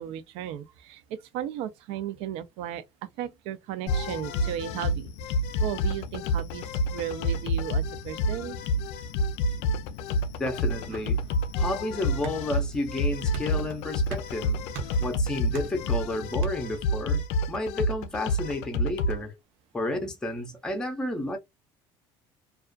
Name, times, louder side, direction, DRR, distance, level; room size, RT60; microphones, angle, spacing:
voice 1, 0.0-2.8 3.2-5.1 5.6-6.7 6.9-8.6, right 10 dB, 75° right, 0.4 m, -35 dB
sound 1, 3.9-19.2, left 1 dB, 80° left, 0.5 m, -28 dB
sound 2, 10.2-16.8, right 1 dB, 90° right, 1.0 m, -42 dB
voice 2, 10.4-11.2 11.6-14.6 15.0-17.2 17.5-19.4 19.7-21.4, left 1 dB, 5° left, 0.5 m, -31 dB
2.3 x 2.3 x 2.3 m
cardioid pair, 165°, 11 cm